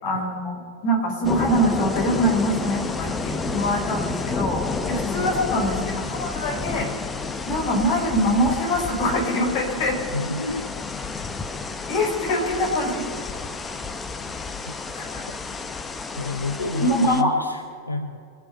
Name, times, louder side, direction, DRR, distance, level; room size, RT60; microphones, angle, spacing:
voice 1, 0.0-6.9 7.5-10.0 11.9-13.1 14.9-15.1 16.7-17.4, equal, 50° left, 0 dB, 4.6 m, -24 dB
sound 1, 1.2-17.2, left 4 dB, 15° left, 0.9 m, -30 dB
voice 2, 10.1-10.7 14.7-14.8 16.2-18.2, left 2 dB, 85° left, 8 dB, 0.6 m, -30 dB
24.5 x 8.7 x 5.6 m, 2.4 s
figure-of-eight pair, 90°, 0 cm